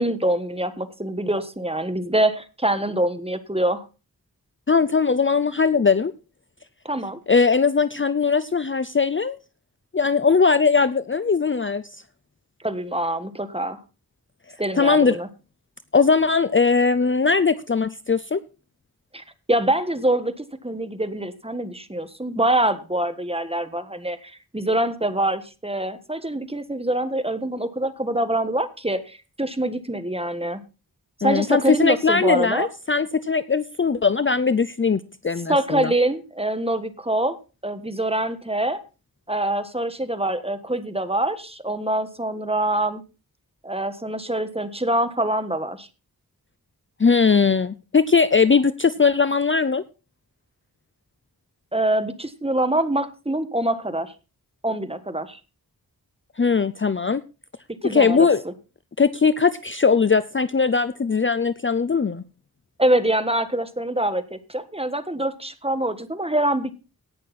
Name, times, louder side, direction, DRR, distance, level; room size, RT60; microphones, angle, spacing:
voice 1, 0.0-3.8 6.8-7.2 12.6-13.8 14.6-15.3 19.1-30.6 31.2-32.7 35.5-37.4 37.6-38.8 39.3-43.0 43.6-45.9 51.7-54.1 54.6-55.4 57.7-58.5 62.8-66.7, right 1 dB, 15° right, 10 dB, 1.5 m, -25 dB
voice 2, 4.7-6.1 7.3-9.4 9.9-11.8 14.7-15.2 15.9-18.4 31.2-35.9 47.0-49.8 56.4-57.2 57.8-58.4 59.0-62.2, left 5 dB, 35° left, 14 dB, 0.5 m, -20 dB
17.5 x 6.6 x 4.2 m, 0.32 s
wide cardioid pair, 45°, 37 cm